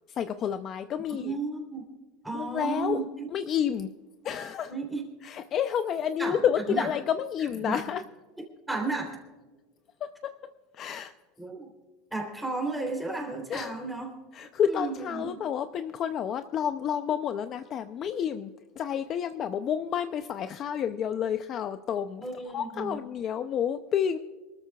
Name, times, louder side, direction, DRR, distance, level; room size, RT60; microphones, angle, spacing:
voice 1, 0.1-1.3 2.3-3.0 3.3-3.9 4.2-4.7 5.2-8.0 10.7-11.1 13.5-13.7 14.3-18.5 18.8-22.2 22.5-24.2, left 8 dB, 35° left, 10 dB, 0.5 m, -29 dB
voice 2, 1.0-1.8 2.2-3.3 4.7-5.0 6.2-6.9 7.6-7.8 8.7-9.2 11.4-11.7 12.1-14.2 14.6-15.4 22.2-23.0, right 3 dB, 5° right, 1 dB, 3.3 m, -33 dB
27.0 x 13.0 x 2.3 m, 1.3 s
supercardioid pair, 155°, 0 cm